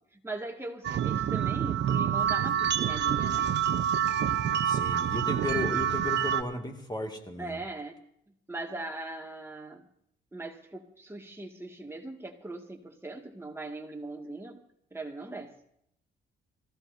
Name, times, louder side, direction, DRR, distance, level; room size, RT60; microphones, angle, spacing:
voice 1, 0.1-3.5 7.4-8.0 8.3-9.9 10.3-14.7 14.9-15.5, right 2 dB, 10° right, 2 dB, 2.2 m, -40 dB
sound 1, 0.8-6.4, right 9 dB, 60° right, 0.8 m, -27 dB
voice 2, 4.6-7.6, left 2 dB, 20° left, 3 dB, 2.3 m, -34 dB
25.5 x 15.5 x 2.8 m, 0.72 s
cardioid pair, 90°, 20 cm